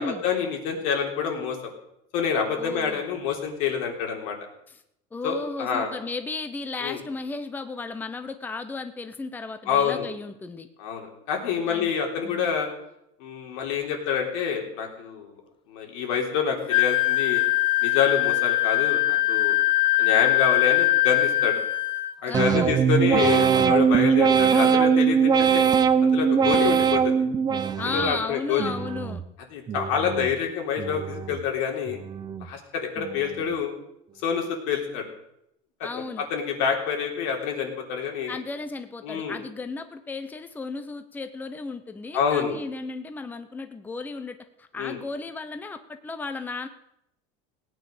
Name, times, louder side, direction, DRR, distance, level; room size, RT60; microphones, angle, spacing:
voice 1, 0.0-1.6 2.1-4.4 5.2-5.9 6.8-7.0 9.7-10.1 10.8-12.7 13.2-15.4 15.7-17.4 17.8-19.6 20.0-21.6 22.2-25.6 26.0-27.2 27.9-28.7 29.5-32.0 32.4-33.7 34.2-35.0 35.8-38.4 39.0-39.4 42.1-42.6 44.8-45.0, left 7 dB, 80° left, 2 dB, 3.7 m, -27 dB
voice 2, 2.6-3.0 4.7-4.8 5.1-10.7 11.7-11.9 12.2-12.6 22.3-22.7 27.8-29.2 35.8-36.3 38.3-46.7, left 3 dB, 10° left, 9 dB, 0.8 m, -34 dB
Wind instrument woodwind instrument, 16.7-22.2, left 17 dB, 30° left, 1.0 m, -22 dB
sound 1, 22.3-28.2 28.6-29.2 29.7-30.3 30.8-31.4 31.9-32.5 33.0-33.5, right 7 dB, 25° right, 0.8 m, -22 dB
17.5 x 9.4 x 6.6 m, 0.79 s
cardioid pair, 150°, 17 cm